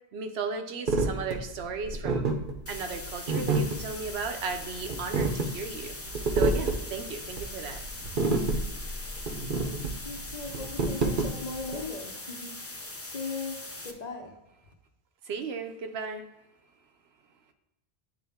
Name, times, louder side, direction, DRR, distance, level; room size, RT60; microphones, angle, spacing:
voice 1, 0.1-2.3 2.7-5.9 6.3-7.8 15.2-16.3, right 5 dB, 85° right, 6 dB, 1.0 m, -35 dB
sound 1, 0.9-11.8, right 3 dB, 55° right, 0.9 m, -29 dB
sound 2, 2.7-13.9, left 2 dB, 20° left, 0.4 m, -41 dB
voice 2, 10.0-12.6 13.0-14.3, left 3 dB, 45° left, 2 dB, 0.9 m, -38 dB
8.9 x 3.4 x 3.5 m, 0.98 s
omnidirectional pair, 1.0 m